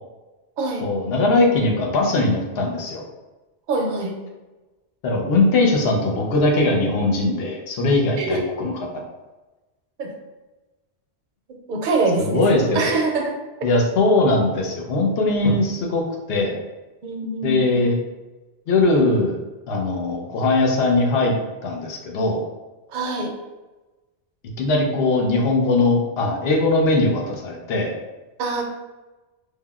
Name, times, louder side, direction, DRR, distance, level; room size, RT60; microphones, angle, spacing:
voice 1, 0.8-3.0 5.0-9.0 12.2-12.9 13.6-16.0 16.3-16.6 17.4-17.9 18.7-19.4 19.7-21.3 21.6-22.4 24.6-27.9, left 2 dB, 70° left, 1 dB, 0.8 m, -20 dB
voice 2, 3.7-4.1 8.2-8.4 10.0-10.1 11.7-13.3 17.0-17.8 22.9-23.3 28.4-28.6, right 3 dB, 55° right, 1 dB, 0.6 m, -24 dB
3.3 x 2.1 x 2.3 m, 1.1 s
omnidirectional pair, 1.1 m